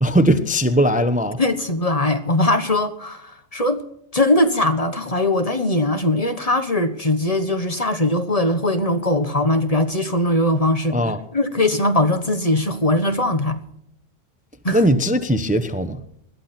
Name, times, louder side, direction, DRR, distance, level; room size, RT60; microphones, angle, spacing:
voice 1, 0.0-1.4 10.9-11.2 14.7-16.0, equal, 5° right, 0.9 m, -19 dB
voice 2, 1.4-3.8 4.1-11.0 11.3-13.6 14.6-14.8, left 1 dB, 30° left, 1.3 m, -20 dB
20.5 x 14.0 x 4.4 m
omnidirectional pair, 1.3 m